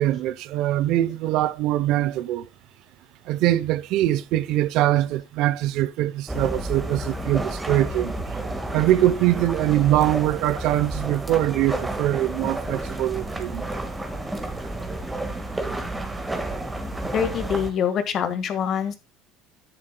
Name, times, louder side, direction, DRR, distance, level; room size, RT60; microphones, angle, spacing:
voice 1, 0.0-2.5 3.3-8.1 8.7-13.6, right 14 dB, 65° right, 0.6 m, -23 dB
sound 1, 6.3-17.7, right 1 dB, 10° right, 1.6 m, -31 dB
voice 2, 17.1-19.0, left 8 dB, 45° left, 1.5 m, -25 dB
11.5 x 10.0 x 2.2 m
cardioid pair, 130°, 0 cm